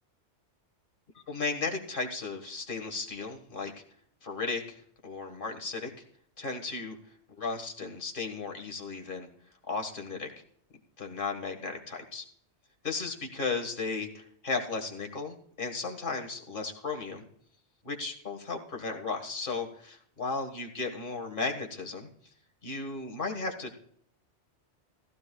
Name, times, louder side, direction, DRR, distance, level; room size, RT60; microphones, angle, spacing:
voice 1, 1.2-3.7 4.2-5.9 6.4-7.0 7.4-9.3 9.7-10.3 11.0-12.2 12.8-17.2 17.8-22.1 22.6-23.7, left 4 dB, 45° left, 3 dB, 1.9 m, -35 dB
16.0 x 15.5 x 2.3 m, 0.64 s
omnidirectional pair, 1.2 m